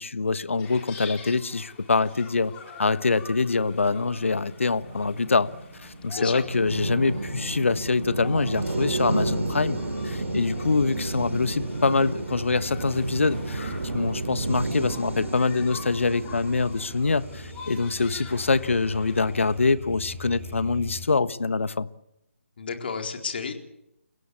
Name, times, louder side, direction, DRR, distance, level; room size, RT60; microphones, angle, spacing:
voice 1, 0.0-2.5 2.8-5.5 5.8-9.8 10.0-21.9, left 4 dB, 60° left, 15 dB, 1.2 m, -25 dB
sound 1, 0.6-19.7, left 5 dB, 15° left, 4.8 m, -46 dB
sound 2, 3.2-18.6, right 2 dB, 60° right, 3.1 m, -32 dB
sound 3, 5.5-21.0, left 1 dB, 15° right, 7.4 m, -45 dB
voice 2, 22.6-23.5, left 5 dB, 45° left, 3 dB, 4.2 m, -31 dB
29.5 x 16.5 x 8.6 m, 0.81 s
figure-of-eight pair, 145°, 8 cm